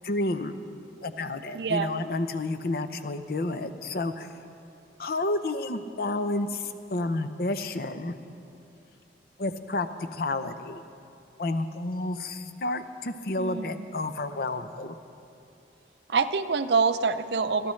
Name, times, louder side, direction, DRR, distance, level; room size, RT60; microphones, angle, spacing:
voice 1, 0.0-0.6 1.0-4.3 5.0-8.1 9.4-10.8 11.4-15.0, left 2 dB, 55° left, 10 dB, 0.6 m, -30 dB
voice 2, 1.5-1.9 13.4-13.9 16.1-17.7, right 5 dB, 70° right, 11 dB, 0.5 m, -26 dB
23.0 x 13.0 x 3.2 m, 2.6 s
head